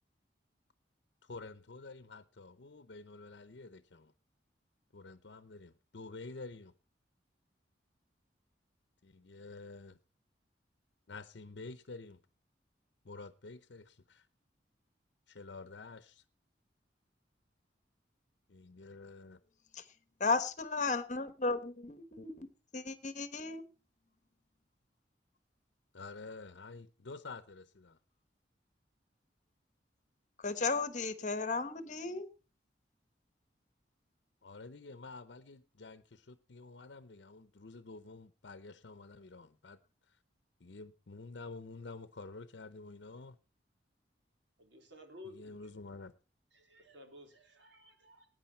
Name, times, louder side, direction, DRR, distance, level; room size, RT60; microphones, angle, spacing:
voice 1, 1.2-4.1 4.9-6.7 9.0-10.0 11.1-12.2 13.0-14.3 15.3-16.2 18.5-19.4 25.9-28.0 34.4-39.8 40.1-40.2 40.6-43.4 45.3-46.1, left 3 dB, 75° left, 0.7 m, -49 dB
voice 2, 20.2-23.6 30.4-32.3, left 4 dB, 40° left, 1.1 m, -35 dB
voice 3, 44.6-45.6 46.5-48.3, left 2 dB, 80° right, 3.6 m, -54 dB
19.5 x 9.4 x 4.4 m
head